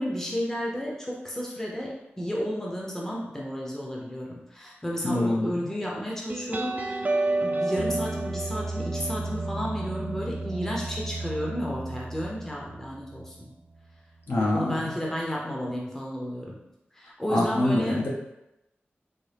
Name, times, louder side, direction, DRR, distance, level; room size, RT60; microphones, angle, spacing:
voice 1, 0.0-7.1 7.4-13.5 14.4-16.6 16.9-18.0, equal, 10° left, -3 dB, 0.7 m, -32 dB
voice 2, 5.0-5.5 14.3-14.8 17.3-18.1, left 1 dB, 60° left, -4 dB, 1.0 m, -25 dB
sound 1, 6.3-13.5, right 2 dB, 40° right, 0.3 m, -31 dB
4.1 x 2.1 x 3.3 m, 0.89 s
wide cardioid pair, 75°, 4 cm